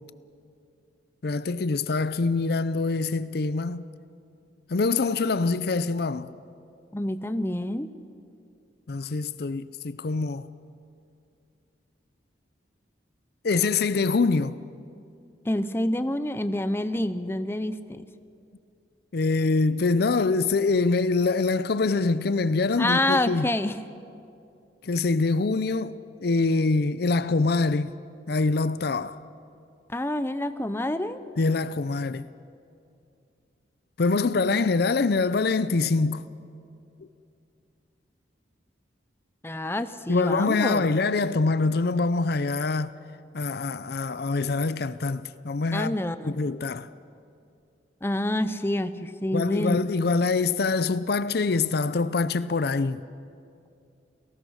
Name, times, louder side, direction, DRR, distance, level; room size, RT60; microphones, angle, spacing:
voice 1, 1.2-3.8 4.7-6.3 8.9-10.4 13.4-14.6 19.1-23.5 24.8-27.9 28.3-29.2 31.4-32.3 34.0-36.3 40.1-42.9 43.3-46.0 46.3-46.9 49.3-53.0, left 3 dB, 60° left, 0.5 m, -24 dB
voice 2, 6.9-7.9 15.5-18.1 22.8-23.8 29.9-31.2 39.4-40.9 45.7-46.3 48.0-49.8, left 1 dB, 15° left, 0.7 m, -27 dB
28.5 x 18.5 x 6.4 m
head